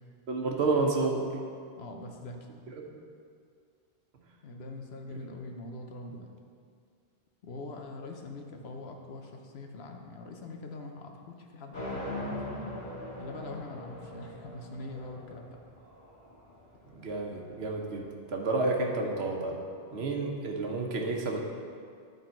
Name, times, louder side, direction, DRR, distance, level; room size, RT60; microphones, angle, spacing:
voice 1, 0.3-1.3 2.7-2.8 16.9-19.6 19.9-21.4, right 3 dB, 80° right, 1 dB, 1.2 m, -30 dB
voice 2, 1.8-2.5 4.4-6.3 7.4-12.4 13.2-15.6, left 2 dB, 75° left, 3 dB, 1.0 m, -43 dB
sound 1, 11.7-17.8, left 1 dB, 55° left, 2.4 m, -41 dB
11.0 x 3.9 x 4.4 m, 2.2 s
omnidirectional pair, 1.1 m